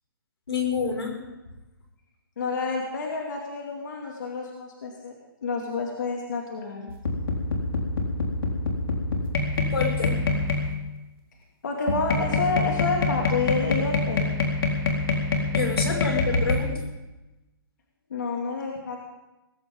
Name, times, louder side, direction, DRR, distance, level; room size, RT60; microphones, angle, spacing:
voice 1, 0.5-1.2 9.1-9.2 9.7-10.2 15.5-16.7, left 5 dB, 90° left, 2 dB, 6.0 m, -27 dB
voice 2, 2.4-6.9 11.6-14.4 16.0-16.1 18.1-19.0, left 4 dB, 50° left, 0 dB, 2.6 m, -29 dB
sound 1, 6.9-10.8 11.9-16.6, left 3 dB, 70° left, 4.2 m, -25 dB
19.5 x 16.5 x 3.9 m, 1.0 s
hypercardioid pair, 180°, 13 cm